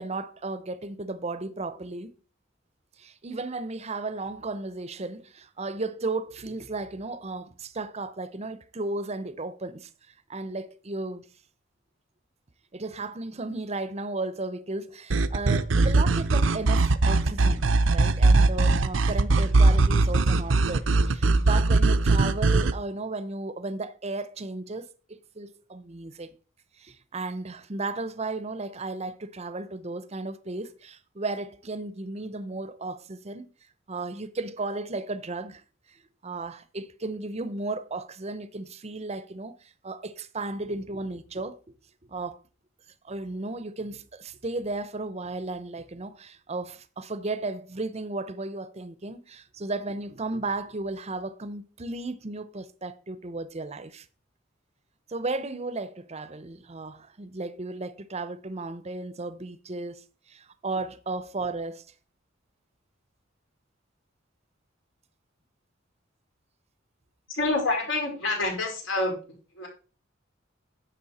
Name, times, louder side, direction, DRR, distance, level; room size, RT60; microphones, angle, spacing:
voice 1, 0.0-2.1 3.0-9.9 10.3-11.3 12.7-26.3 26.8-33.5 33.9-35.6 35.9-41.6 42.1-42.4 43.0-54.1 55.1-61.8, right 3 dB, 35° right, 0.7 m, -34 dB
sound 1, 15.1-22.7, right 3 dB, 75° right, 0.7 m, -21 dB
voice 2, 67.3-69.2 69.5-69.7, left 2 dB, 75° left, 5.1 m, -27 dB
10.5 x 7.4 x 4.2 m
head